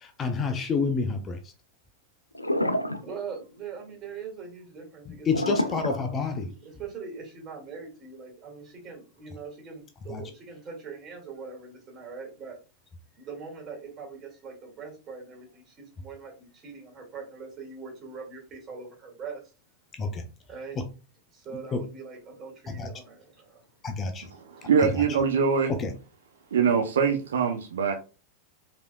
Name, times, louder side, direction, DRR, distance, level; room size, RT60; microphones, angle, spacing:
voice 1, 0.0-1.4 5.3-6.5 10.1-10.2 20.0-20.2 21.7-21.8 22.7-22.9 23.8-24.2 24.8-24.9 25.7-25.9, left 4 dB, 25° left, 0.5 m, -28 dB
sound 1, 2.3-3.0 3.3-3.6 5.3-6.7, equal, 85° left, 0.3 m, -28 dB
voice 2, 2.9-5.7 6.6-12.6 13.1-19.4 20.5-20.8 21.3-23.7 24.5-24.7, right 5 dB, 25° right, 2.2 m, -42 dB
voice 3, 24.3-25.7 26.5-28.0, right 6 dB, 65° right, 0.5 m, -23 dB
5.0 x 3.4 x 2.3 m
figure-of-eight pair, 90°, 0 cm